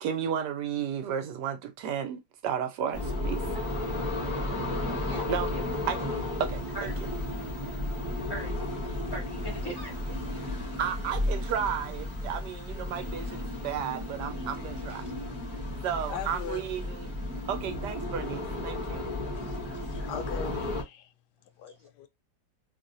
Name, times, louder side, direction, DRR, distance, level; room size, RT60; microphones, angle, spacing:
voice 1, 0.0-3.4 5.3-5.5 5.9-6.9 10.8-15.0 15.8-17.1 17.5-19.1, right 8 dB, 75° right, 1.1 m, -33 dB
sound 1, 2.9-20.8, left 1 dB, 10° right, 1.0 m, -33 dB
voice 2, 9.1-10.2 14.9-15.0 19.6-19.8 21.7-21.8, right 1 dB, 25° left, 0.5 m, -40 dB
voice 3, 16.1-16.6 19.4-19.6 19.9-21.1 21.6-22.1, left 7 dB, 70° left, 1.1 m, -39 dB
3.1 x 2.7 x 2.6 m
omnidirectional pair, 2.0 m